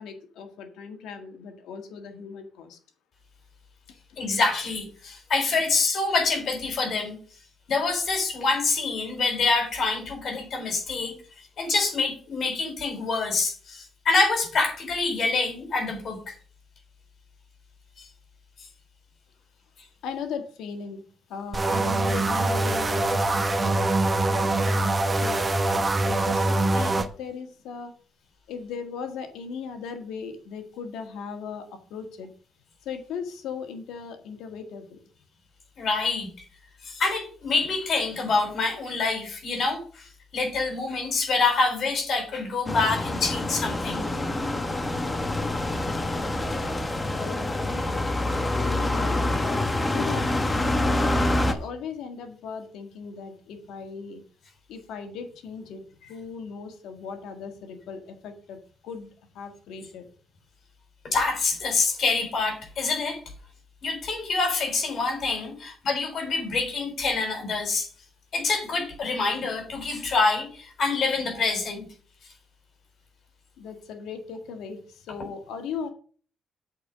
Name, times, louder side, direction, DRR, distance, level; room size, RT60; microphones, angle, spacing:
voice 1, 0.0-2.8 20.0-21.0 21.3-23.9 24.3-27.9 28.5-32.3 32.8-35.0 47.2-48.0 48.6-51.1 51.5-54.2 54.7-59.1 59.3-60.1 73.6-75.9, left 6 dB, 85° left, 7 dB, 1.6 m, -38 dB
voice 2, 4.2-7.2 7.7-11.1 11.6-16.3 18.0-18.1 18.6-18.7 35.8-36.3 36.8-44.1 46.5-46.6 61.1-63.2 63.8-67.9 68.3-71.8, left 3 dB, 60° left, 4 dB, 3.7 m, -26 dB
sound 1, 21.5-27.1, right 2 dB, 25° right, 1.0 m, -24 dB
sound 2, 42.7-51.5, left 1 dB, 20° left, 1.2 m, -26 dB
8.1 x 4.5 x 7.3 m, 0.42 s
cardioid pair, 90°, 0 cm